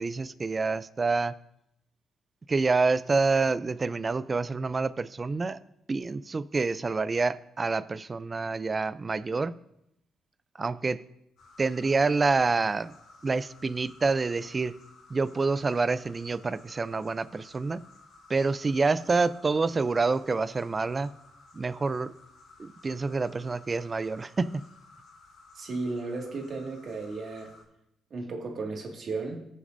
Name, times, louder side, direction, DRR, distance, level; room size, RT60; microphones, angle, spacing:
voice 1, 0.0-1.3 2.5-5.6 5.9-9.5 10.6-11.0 11.6-12.9 13.2-14.7 15.1-17.8 18.3-21.1 21.5-22.1 22.6-24.6, right 4 dB, 30° right, 16 dB, 0.4 m, -27 dB
sound 1, 11.4-27.6, left 3 dB, 75° left, 2.6 m, -55 dB
voice 2, 25.6-27.5 28.1-29.5, right 3 dB, 55° right, 1 dB, 2.0 m, -34 dB
19.0 x 6.6 x 2.6 m, 0.81 s
cardioid pair, 90°, 0 cm